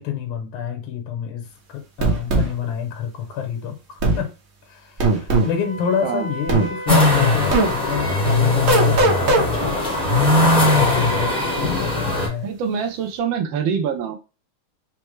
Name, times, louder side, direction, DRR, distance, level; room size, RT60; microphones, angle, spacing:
voice 1, 0.0-4.3 4.7-9.8 10.2-12.5, left 8 dB, 85° left, 1.8 m, -28 dB
sound 1, 2.0-2.5 4.0-4.2 5.0-5.5 6.5-6.7 7.5-7.7 8.7-9.5, right 2 dB, 55° right, 0.9 m, -18 dB
Wind instrument woodwind instrument, 5.3-10.0, equal, 55° left, 1.4 m, -35 dB
sound 2, 6.9-12.3, left 2 dB, 5° left, 0.9 m, -19 dB
voice 2, 12.4-14.2, right 7 dB, 70° right, 1.4 m, -24 dB
4.4 x 2.1 x 3.1 m
omnidirectional pair, 2.4 m